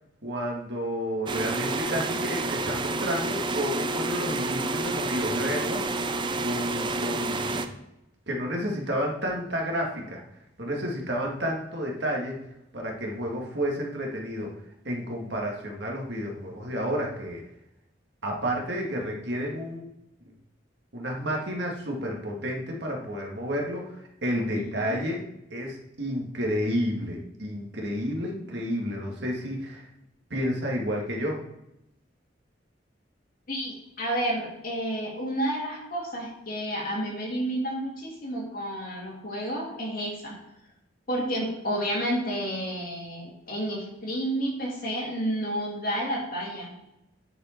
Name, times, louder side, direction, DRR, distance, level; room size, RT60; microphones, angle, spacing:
voice 1, 0.2-6.1 6.4-7.7 8.3-10.2 10.6-12.4 12.7-14.5 14.9-17.4 18.2-19.9 20.9-25.2 25.5-29.8 30.3-31.4, equal, 65° right, 0 dB, 1.9 m, -31 dB
sound 1, 1.3-7.7, right 2 dB, 25° right, 0.5 m, -29 dB
voice 2, 24.5-25.0 33.5-40.4 41.1-46.7, right 1 dB, 50° left, -2 dB, 2.7 m, -30 dB
9.7 x 4.9 x 4.5 m, 0.88 s
head